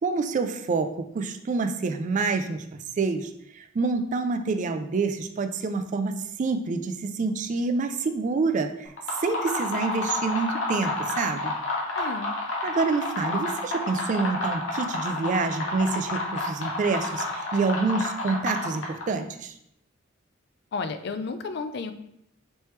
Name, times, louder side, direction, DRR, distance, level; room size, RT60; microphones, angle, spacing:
voice 1, 0.0-8.9 9.2-11.5 12.6-19.5, right 4 dB, 40° right, 8 dB, 0.3 m, -27 dB
sound 1, 8.9-19.2, left 2 dB, 85° left, 0.9 m, -30 dB
voice 2, 11.9-12.3 20.7-21.9, left 4 dB, 60° left, 9 dB, 0.4 m, -32 dB
4.3 x 3.3 x 3.1 m, 0.76 s
head